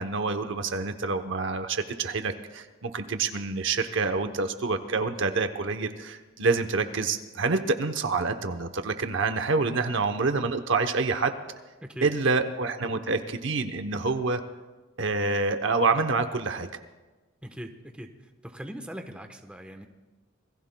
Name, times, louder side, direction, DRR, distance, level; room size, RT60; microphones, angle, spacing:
voice 1, 0.0-11.3 12.0-14.4 15.0-16.7, right 4 dB, 65° right, 7 dB, 0.8 m, -27 dB
voice 2, 17.4-18.1 18.4-19.9, equal, 5° right, 5 dB, 1.0 m, -40 dB
26.5 x 21.0 x 2.2 m, 1.2 s
head